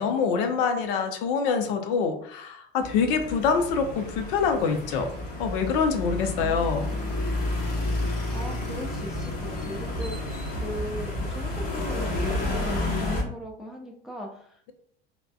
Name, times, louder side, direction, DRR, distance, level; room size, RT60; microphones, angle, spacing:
voice 1, 0.0-5.1 5.4-6.9, left 5 dB, 60° left, 6 dB, 0.5 m, -25 dB
sound 1, 2.8-13.2, left 2 dB, 30° left, 0.9 m, -30 dB
voice 2, 6.4-7.2 8.3-14.7, equal, ahead, 0 dB, 0.4 m, -39 dB
3.3 x 2.1 x 2.2 m, 0.62 s
figure-of-eight pair, 75°, 31 cm